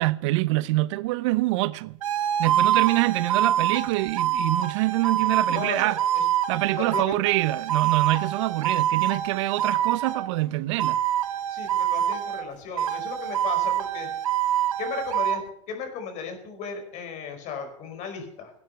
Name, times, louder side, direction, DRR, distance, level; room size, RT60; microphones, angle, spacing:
voice 1, 0.0-2.0 2.4-6.0 6.5-11.0, right 19 dB, 65° right, 0.7 m, -25 dB
sound 1, 2.0-10.3 10.8-12.5 12.8-15.4, right 10 dB, 90° right, 1.2 m, -25 dB
voice 2, 5.5-5.9 6.1-6.3 6.7-7.0 11.5-14.1 14.8-15.4 15.7-18.5, left 6 dB, 45° left, 5.3 m, -35 dB
18.5 x 9.6 x 5.8 m
supercardioid pair, 120°, 17 cm